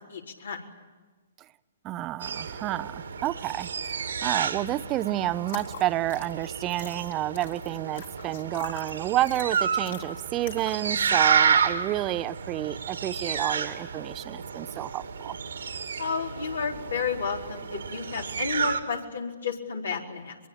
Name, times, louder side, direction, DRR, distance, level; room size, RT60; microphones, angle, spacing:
voice 1, 0.1-0.6 16.0-20.4, left 5 dB, 85° left, 4.4 m, -31 dB
voice 2, 1.8-15.3, right 14 dB, 25° right, 0.7 m, -30 dB
sound 1, 2.2-18.8, right 6 dB, 80° right, 2.4 m, -30 dB
sound 2, 5.4-10.9, left 7 dB, 60° left, 3.8 m, -45 dB
23.5 x 23.0 x 8.9 m
hypercardioid pair, 130°, 0 cm